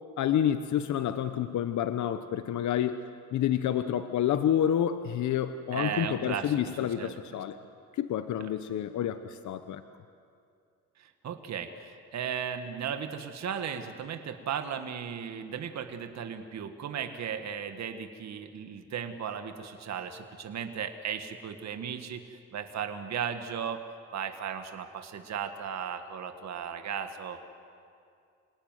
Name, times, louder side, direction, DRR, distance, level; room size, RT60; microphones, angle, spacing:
voice 1, 0.2-7.6 7.9-9.8, left 10 dB, 70° left, 10 dB, 1.0 m, -29 dB
voice 2, 5.7-7.2 8.4-8.5 11.0-23.8 24.1-27.4, right 7 dB, 65° right, 7 dB, 1.9 m, -36 dB
27.5 x 18.5 x 9.5 m, 2.4 s
cardioid pair, 90°, 30 cm